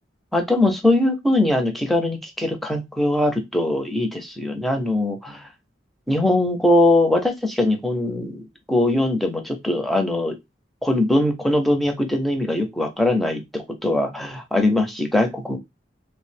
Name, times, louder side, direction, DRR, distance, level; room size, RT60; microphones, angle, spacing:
voice 1, 0.3-5.5 6.1-10.4 10.8-15.6, left 1 dB, ahead, 4 dB, 0.5 m, -21 dB
2.9 x 2.0 x 3.2 m, 0.20 s
head